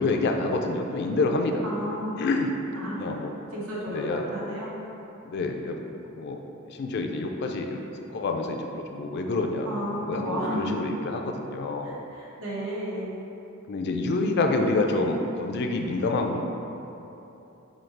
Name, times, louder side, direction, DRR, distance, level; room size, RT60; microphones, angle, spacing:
voice 1, 0.0-1.6 2.2-2.5 3.0-3.3 3.9-4.2 5.3-5.8 6.2-6.4 6.8-7.8 8.1-9.7 10.0-11.9 13.7-16.4, left 2 dB, 50° left, 3 dB, 0.3 m, -27 dB
voice 2, 1.6-2.2 2.7-3.1 3.5-4.7 9.6-10.8 11.8-13.1 14.9-15.1, equal, 80° right, -6 dB, 1.1 m, -33 dB
4.9 x 2.3 x 4.4 m, 2.9 s
head